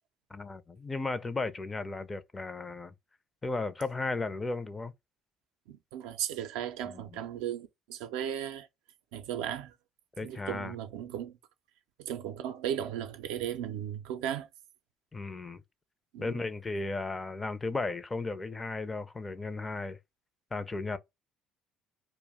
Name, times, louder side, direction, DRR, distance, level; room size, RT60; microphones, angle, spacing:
voice 1, 0.3-2.9 3.4-4.9 6.9-7.0 10.2-10.7 15.1-15.6 16.2-20.0 20.5-21.0, left 3 dB, 25° left, 0.4 m, -35 dB
voice 2, 5.7-8.7 9.1-9.7 10.2-11.3 12.0-14.5 16.1-16.4, right 10 dB, 80° right, 0.3 m, -36 dB
2.3 x 2.0 x 3.4 m
hypercardioid pair, 60°, 0 cm